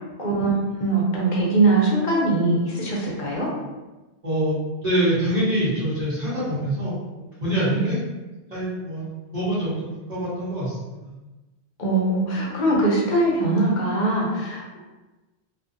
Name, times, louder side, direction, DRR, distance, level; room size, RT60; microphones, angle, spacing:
voice 1, 0.2-0.5 0.8-3.5 7.7-7.8 11.8-14.8, right 2 dB, 50° left, -4 dB, 0.8 m, -21 dB
voice 2, 4.2-8.0 8.5-11.1, right 1 dB, 45° right, -12 dB, 1.0 m, -25 dB
2.5 x 2.4 x 2.6 m, 1.1 s
omnidirectional pair, 1.1 m